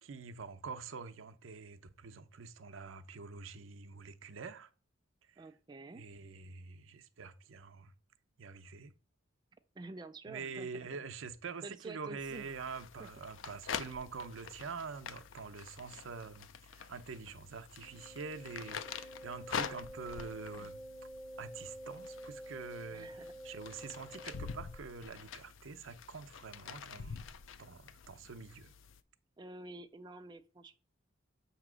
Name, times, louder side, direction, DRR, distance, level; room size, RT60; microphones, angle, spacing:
voice 1, 0.0-4.7 5.3-5.5 5.9-7.9 8.4-8.9 10.3-20.8 21.4-27.3 27.6-28.7, right 5 dB, 80° right, 0.6 m, -46 dB
voice 2, 5.4-6.0 9.8-10.9 11.6-12.5 13.0-13.1 22.9-23.3 29.4-30.8, right 3 dB, 20° right, 0.3 m, -48 dB
sound 1, 12.2-29.0, left 6 dB, 75° left, 0.5 m, -46 dB
Wind instrument woodwind instrument, 17.8-24.8, right 1 dB, 50° left, 1.3 m, -49 dB
7.5 x 3.0 x 6.0 m
head